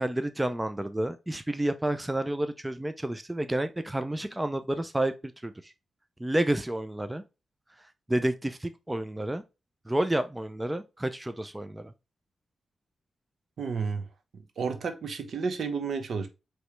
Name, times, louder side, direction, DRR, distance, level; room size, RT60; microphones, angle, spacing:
voice 1, 0.0-5.1 5.4-5.7 6.2-7.2 8.1-9.4 9.9-11.9, right 1 dB, 10° right, 0.5 m, -30 dB
voice 2, 13.6-14.1 14.3-16.3, right 5 dB, 70° right, 0.9 m, -31 dB
4.9 x 3.1 x 3.2 m
cardioid pair, 85°, 0 cm